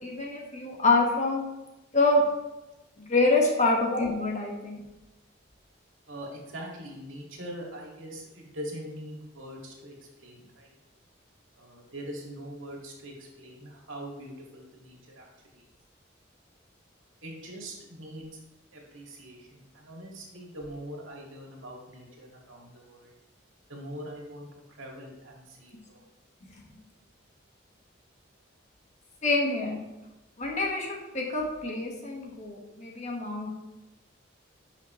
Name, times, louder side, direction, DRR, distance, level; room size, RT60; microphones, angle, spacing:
voice 1, 0.0-1.5 1.9-2.2 3.0-4.8 29.2-29.8 30.4-33.5, left 2 dB, 35° left, -1 dB, 1.6 m, -26 dB
voice 2, 6.1-10.7 11.6-15.3 15.5-15.6 17.2-18.3 18.7-23.1 23.7-24.5 24.8-26.1, equal, 85° right, -1 dB, 2.2 m, -42 dB
11.0 x 5.8 x 3.2 m, 0.99 s
head